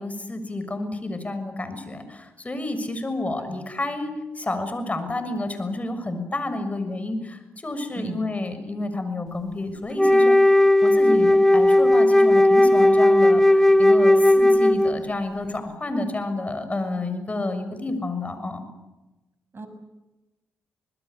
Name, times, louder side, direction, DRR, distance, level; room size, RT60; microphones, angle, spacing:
voice 1, 0.0-10.4 10.8-18.6, left 2 dB, 30° left, 9 dB, 6.6 m, -30 dB
voice 2, 3.4-3.7 7.9-8.2 19.5-19.7, right 4 dB, 45° right, 9 dB, 6.1 m, -37 dB
Wind instrument woodwind instrument, 9.9-15.1, left 1 dB, 5° left, 1.7 m, -16 dB
26.0 x 20.5 x 8.5 m, 1.1 s
supercardioid pair, 50°, 5 cm